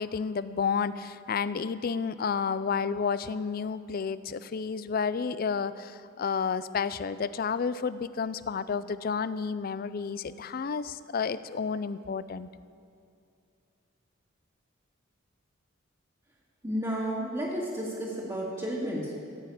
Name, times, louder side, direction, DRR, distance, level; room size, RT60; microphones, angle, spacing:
voice 1, 0.0-12.5, left 5 dB, 45° left, 15 dB, 0.4 m, -31 dB
voice 2, 16.6-19.1, equal, 20° right, -9 dB, 1.9 m, -32 dB
15.0 x 6.4 x 9.1 m, 2.5 s
head